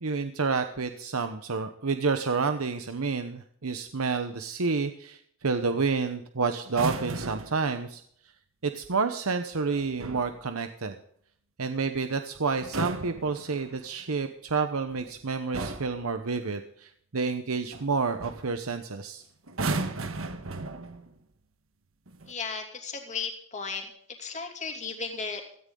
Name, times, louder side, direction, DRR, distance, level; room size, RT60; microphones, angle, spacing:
voice 1, 0.0-8.0 8.6-10.9 11.6-19.2, right 4 dB, 85° right, 8 dB, 1.0 m, -29 dB
sound 1, 6.6-7.6 9.7-10.3 12.5-13.9 14.9-15.1 15.5-16.0 17.7-17.9 18.2-18.5 19.5-21.1 22.1-22.3, right 3 dB, 70° right, 1.4 m, -35 dB
voice 2, 22.3-23.9 24.2-25.4, left 5 dB, 35° left, 3 dB, 2.7 m, -35 dB
17.0 x 13.5 x 3.9 m, 0.66 s
head